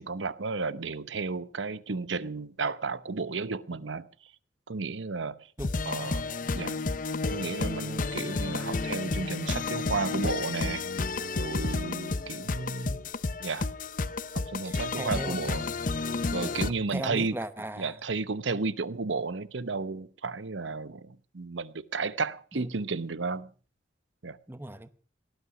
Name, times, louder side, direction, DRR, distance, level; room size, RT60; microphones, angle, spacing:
voice 1, 0.0-4.0 4.7-5.4 5.9-6.2 6.5-6.8 7.3-10.8 11.4-13.0 13.4-13.7 14.5-15.7 16.3-17.3 17.8-23.5 24.2-24.4, right 4 dB, 85° right, 0.9 m, -33 dB
sound 1, 5.6-16.7, left 3 dB, 45° left, 0.7 m, -31 dB
voice 2, 14.6-15.6 16.6-18.0 22.5-22.7 24.5-24.9, right 1 dB, 10° right, 0.8 m, -38 dB
18.5 x 11.5 x 6.1 m
head